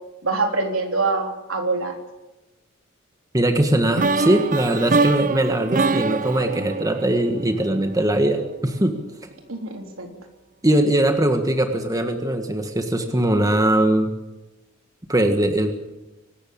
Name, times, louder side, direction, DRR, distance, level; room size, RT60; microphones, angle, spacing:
voice 1, 0.2-1.9 9.5-10.1, right 3 dB, 75° right, 3 dB, 3.8 m, -24 dB
voice 2, 3.3-9.0 10.6-14.1 15.1-15.7, right 1 dB, 15° right, 5 dB, 1.7 m, -20 dB
sound 1, 4.0-7.9, right 3 dB, 40° right, 0.6 m, -24 dB
25.0 x 13.0 x 8.7 m, 1.0 s
head